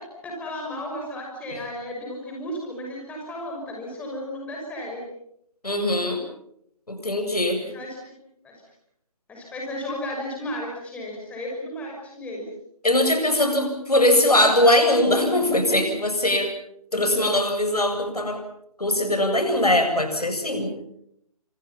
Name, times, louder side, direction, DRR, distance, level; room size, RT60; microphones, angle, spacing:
voice 1, 0.2-5.0 7.5-8.1 8.4-8.5 9.3-12.4, left 1 dB, 5° left, -1 dB, 6.0 m, -34 dB
voice 2, 5.6-6.2 6.9-7.6 12.8-16.5 16.9-18.4 18.8-20.7, left 1 dB, 80° left, 5 dB, 7.9 m, -21 dB
29.0 x 27.0 x 5.8 m, 0.73 s
figure-of-eight pair, 150°, 19 cm